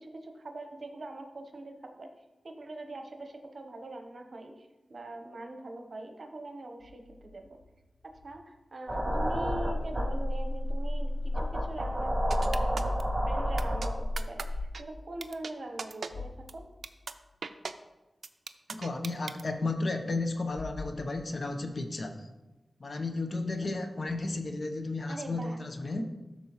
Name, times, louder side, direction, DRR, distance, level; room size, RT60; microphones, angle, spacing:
voice 1, 0.0-2.1 2.4-7.6 8.0-13.0 13.3-14.5 14.8-16.7 25.1-25.6, right 2 dB, 60° right, 4 dB, 0.9 m, -43 dB
sound 1, 6.8-8.5 8.8-10.5 11.4-12.5 12.9-13.0 14.3-14.7 15.1-15.3 15.7-15.8 16.1-17.4 20.4-21.5, left 4 dB, 75° left, 0.5 m, -46 dB
sound 2, 8.9-14.6, equal, 30° right, 2.4 m, -30 dB
sound 3, 12.3-13.0 13.6-13.9 14.2-14.4 14.7-14.8 15.2-15.5 15.8-16.1 16.5-16.6 16.8-17.1 17.4-17.7 18.2-19.4, right 5 dB, 85° right, 0.4 m, -37 dB
voice 2, 18.7-22.3 22.8-26.1, left 2 dB, 55° left, 5 dB, 0.8 m, -33 dB
13.0 x 4.4 x 3.0 m, 1.1 s
wide cardioid pair, 75°, 0 cm